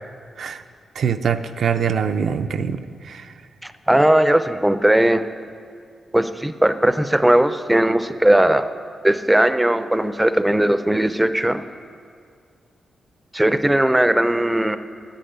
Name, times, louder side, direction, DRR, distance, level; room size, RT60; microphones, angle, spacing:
voice 1, 1.0-3.3, right 7 dB, 70° right, 9 dB, 0.5 m, -23 dB
voice 2, 3.6-5.3 6.1-8.7 9.0-11.6 13.3-14.8, right 1 dB, 10° right, 11 dB, 0.4 m, -18 dB
10.0 x 9.0 x 7.9 m, 2.2 s
wide cardioid pair, 130°, 0 cm